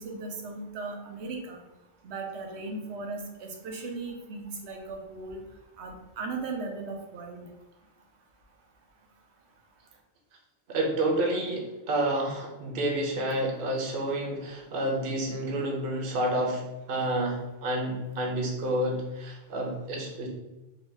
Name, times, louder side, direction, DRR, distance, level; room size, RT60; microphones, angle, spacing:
voice 1, 0.0-1.6 2.0-5.4 5.8-7.5, right 3 dB, 85° right, 3 dB, 0.9 m, -37 dB
voice 2, 10.7-16.6 16.9-20.3, right 1 dB, 60° right, 1 dB, 0.8 m, -29 dB
2.8 x 2.2 x 3.2 m, 1.0 s
omnidirectional pair, 1.1 m